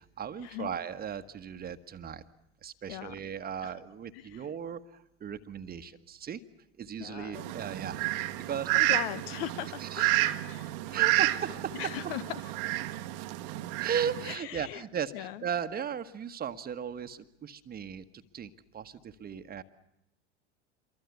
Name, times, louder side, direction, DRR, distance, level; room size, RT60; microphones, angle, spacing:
voice 1, 0.0-2.2 2.6-6.4 6.8-8.9 9.8-10.1 10.9-11.9 13.8-18.0 18.3-19.6, right 8 dB, 30° right, 10 dB, 1.4 m, -37 dB
voice 2, 7.0-7.5 8.7-11.0 11.8-12.2 14.3-14.8 15.1-15.4, left 12 dB, 60° left, 16 dB, 1.1 m, -39 dB
Fowl, 7.3-14.3, right 18 dB, 55° right, 1.3 m, -30 dB
26.5 x 23.5 x 8.4 m, 0.81 s
figure-of-eight pair, 80°, 33 cm